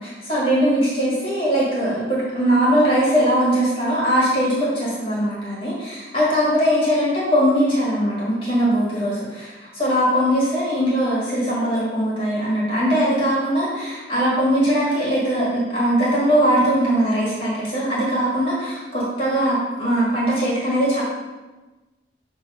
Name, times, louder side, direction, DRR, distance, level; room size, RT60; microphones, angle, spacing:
voice 1, 0.0-21.0, equal, 30° left, -7 dB, 1.9 m, -20 dB
6.8 x 3.4 x 4.2 m, 1.2 s
head